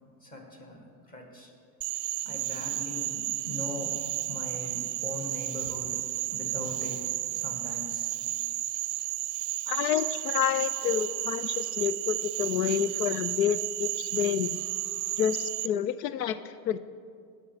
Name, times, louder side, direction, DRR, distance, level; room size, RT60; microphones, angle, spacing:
voice 1, 0.2-1.5 2.2-4.0 4.3-8.4, left 1 dB, 15° left, 2 dB, 1.6 m, -41 dB
Frog, 1.8-15.7, right 17 dB, 50° right, 0.5 m, -33 dB
voice 2, 9.7-14.6 15.2-16.8, left 10 dB, 85° left, 13 dB, 0.6 m, -29 dB
18.5 x 6.5 x 4.8 m, 2.2 s
supercardioid pair, 150°, 48 cm